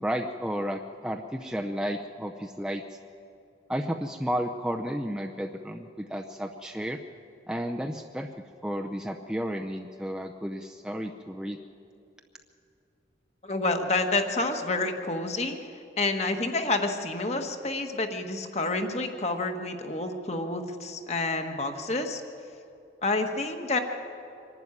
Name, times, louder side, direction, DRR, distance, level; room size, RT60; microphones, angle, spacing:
voice 1, 0.0-3.0 3.7-7.0 7.5-8.3 8.6-11.6, equal, 5° right, 3 dB, 0.6 m, -32 dB
voice 2, 13.4-15.7 16.0-22.2 23.0-23.8, left 2 dB, 35° left, 5 dB, 1.5 m, -29 dB
24.5 x 11.5 x 9.7 m, 2.6 s
head